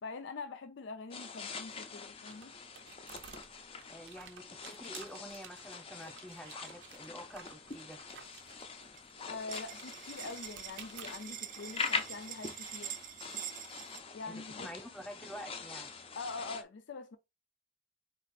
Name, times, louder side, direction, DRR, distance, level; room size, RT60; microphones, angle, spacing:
voice 1, 0.0-2.5 9.3-13.0 14.1-14.7 16.1-17.2, left 3 dB, 85° left, 0.4 m, -44 dB
sound 1, 1.1-16.6, left 5 dB, 30° left, 0.5 m, -44 dB
sound 2, 1.4-13.1, right 7 dB, 85° right, 0.6 m, -55 dB
voice 2, 3.9-8.0 14.2-14.3 14.6-15.9, equal, 5° left, 0.9 m, -48 dB
sound 3, 8.1-8.6 9.0-9.1 9.2-14.0, right 11 dB, 45° right, 0.3 m, -45 dB
4.1 x 2.4 x 4.1 m
head